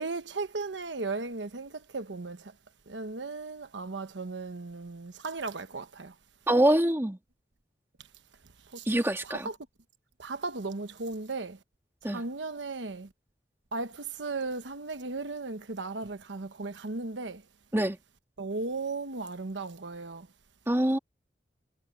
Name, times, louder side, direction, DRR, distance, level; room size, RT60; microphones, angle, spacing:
voice 1, 0.0-2.5 2.9-6.1 8.7-8.9 9.2-9.6 10.2-11.6 12.0-13.1 13.7-17.4 18.4-20.3, right 3 dB, 90° right, 1.1 m, -36 dB
voice 2, 6.5-7.2 8.9-9.5 12.0-12.2 17.7-18.0 20.7-21.0, right 1 dB, 15° right, 1.9 m, -24 dB
head